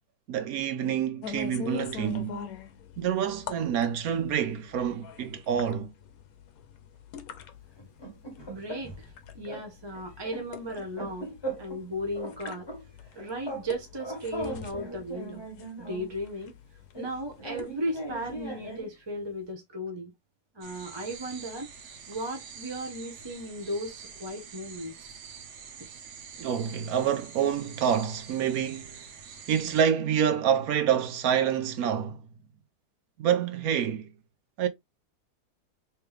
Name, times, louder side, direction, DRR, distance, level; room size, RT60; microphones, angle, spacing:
voice 1, 0.3-2.4 3.0-5.9 26.4-29.0 29.5-32.2 33.2-34.1 34.6-34.7, right 8 dB, 70° right, 1.0 m, -27 dB
sound 1, 1.2-18.8, left 7 dB, 70° left, 1.1 m, -44 dB
sound 2, 7.8-9.1 9.5-9.7 9.9-11.8 12.1-13.7 13.9-16.1 16.9-18.9, right 2 dB, 25° left, 0.5 m, -39 dB
voice 2, 8.5-9.1 9.3-11.3 11.6-12.7 13.1-15.4 15.8-16.5 17.0-20.1 20.5-21.7 22.1-24.9, equal, 25° right, 0.6 m, -36 dB
sound 3, 20.6-29.8, right 6 dB, 85° right, 1.4 m, -46 dB
3.4 x 3.2 x 3.2 m
omnidirectional pair, 1.7 m